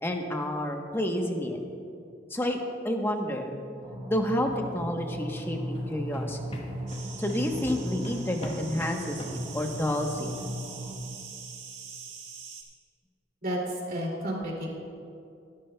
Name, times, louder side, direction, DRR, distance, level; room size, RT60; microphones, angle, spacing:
voice 1, 0.0-1.6 2.3-2.6 2.8-3.5 4.1-6.4 7.2-10.3, left 1 dB, 15° left, 3 dB, 1.0 m, -29 dB
sound 1, 3.8-11.0, equal, 20° right, 2.6 m, -37 dB
sound 2, 4.8-10.5, equal, 30° left, 1.2 m, -45 dB
sound 3, 6.9-12.6, right 6 dB, 85° right, 1.6 m, -44 dB
voice 2, 13.4-14.7, right 1 dB, 50° right, -2 dB, 2.6 m, -31 dB
21.0 x 11.5 x 2.2 m, 2.5 s
head